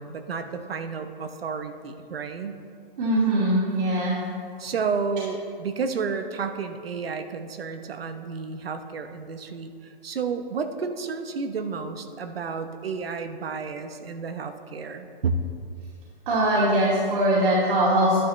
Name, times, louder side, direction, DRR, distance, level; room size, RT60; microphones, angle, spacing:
voice 1, 0.0-2.6 4.6-15.4, right 5 dB, 85° right, 8 dB, 1.0 m, -31 dB
voice 2, 3.0-4.1 16.3-18.2, right 1 dB, 60° right, -8 dB, 2.5 m, -21 dB
11.0 x 10.0 x 3.2 m, 2.2 s
hypercardioid pair, 150°, 29 cm